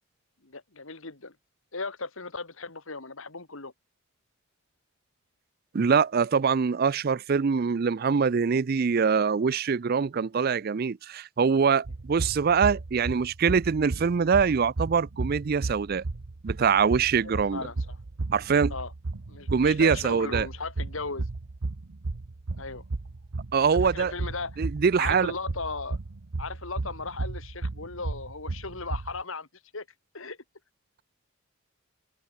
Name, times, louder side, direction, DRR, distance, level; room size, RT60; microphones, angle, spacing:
voice 1, 0.4-1.4 1.7-3.7 17.2-18.0 18.7-18.9 19.3-21.3 22.6-22.8 23.8-24.6 25.0-26.0 26.4-29.5 29.7-29.9 30.1-30.4, left 4 dB, 65° left, 2.1 m, -37 dB
voice 2, 5.7-16.0 16.4-17.6 18.3-18.7 19.5-20.5 23.5-24.1 24.6-25.3, right 6 dB, 45° right, 0.4 m, -24 dB
sound 1, 11.8-29.2, right 3 dB, 85° right, 0.9 m, -34 dB
open air
head